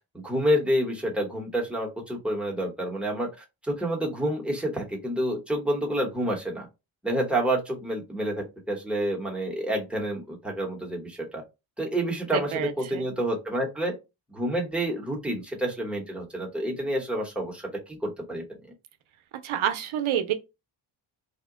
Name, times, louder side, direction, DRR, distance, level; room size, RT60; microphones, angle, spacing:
voice 1, 0.2-3.3 3.6-6.7 7.0-11.4 11.8-13.9 14.3-18.4, right 1 dB, ahead, 0.9 m, -28 dB
voice 2, 12.3-13.1 19.4-20.3, right 10 dB, 75° right, 0.7 m, -28 dB
2.8 x 2.1 x 3.6 m
wide cardioid pair, 125°, 49 cm